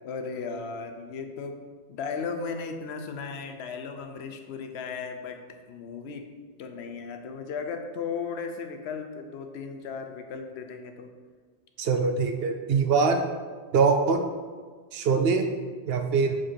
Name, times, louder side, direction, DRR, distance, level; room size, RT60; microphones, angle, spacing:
voice 1, 0.0-1.6 1.9-5.4 5.7-6.3 6.6-11.1, left 5 dB, 80° left, 5 dB, 0.9 m, -36 dB
voice 2, 11.8-13.2 13.7-14.2 14.9-15.4 15.9-16.4, right 5 dB, 70° right, 6 dB, 0.8 m, -23 dB
4.8 x 4.5 x 4.3 m, 1.5 s
omnidirectional pair, 1.1 m